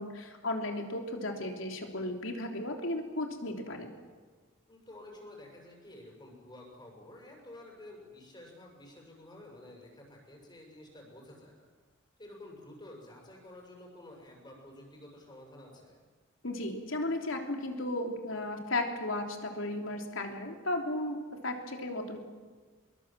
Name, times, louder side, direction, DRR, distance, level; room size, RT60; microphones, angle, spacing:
voice 1, 0.0-3.9 16.4-21.2 21.4-22.2, left 1 dB, 85° left, 3 dB, 3.4 m, -35 dB
voice 2, 4.7-11.7 12.2-16.0, left 1 dB, 25° left, -1 dB, 6.6 m, -51 dB
24.0 x 22.5 x 7.7 m, 1.5 s
head